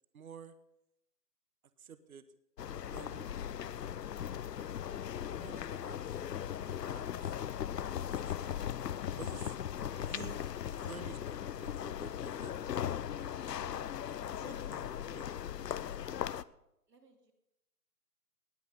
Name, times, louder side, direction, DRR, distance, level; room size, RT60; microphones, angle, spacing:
voice 1, 0.1-0.6 1.8-2.3 2.9-3.3 3.7-4.6 5.2-7.4 8.0-8.7 9.2-9.6 9.9-13.9 14.3-15.2 15.5-15.9, right 7 dB, 60° right, 13 dB, 1.1 m, -53 dB
sound 1, 2.6-16.4, left 9 dB, 85° left, 0.7 m, -38 dB
sound 2, 6.6-13.7, left 5 dB, 25° left, 1.2 m, -61 dB
voice 2, 14.5-15.2 16.9-17.3, right 4 dB, 85° right, 4 dB, 3.0 m, -63 dB
19.0 x 8.5 x 5.6 m, 0.85 s
hypercardioid pair, 160°, 47 cm